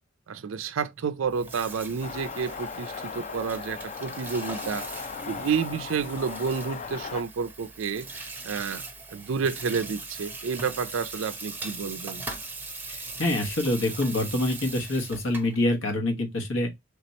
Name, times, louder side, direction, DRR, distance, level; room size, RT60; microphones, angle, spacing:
voice 1, 0.3-4.9 5.3-8.1 8.4-8.8 9.1-12.2, right 6 dB, 90° right, 0.4 m, -30 dB
Water tap faucet / Sink (filling or washing), 1.2-15.6, right 3 dB, 10° right, 0.6 m, -40 dB
sound 1, 2.0-7.2, left 5 dB, 35° left, 0.3 m, -37 dB
voice 2, 12.9-16.7, left 1 dB, 80° left, 1.2 m, -26 dB
3.4 x 2.9 x 4.1 m
head